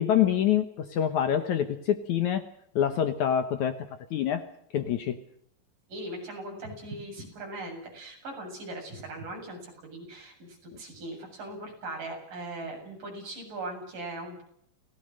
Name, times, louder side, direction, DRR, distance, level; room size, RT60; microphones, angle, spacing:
voice 1, 0.0-2.4 2.8-3.8 4.1-4.4 4.7-5.2, left 9 dB, 65° left, 9 dB, 2.2 m, -26 dB
voice 2, 5.9-14.4, right 2 dB, 60° right, 1 dB, 9.3 m, -39 dB
29.0 x 18.5 x 6.5 m, 0.69 s
omnidirectional pair, 4.3 m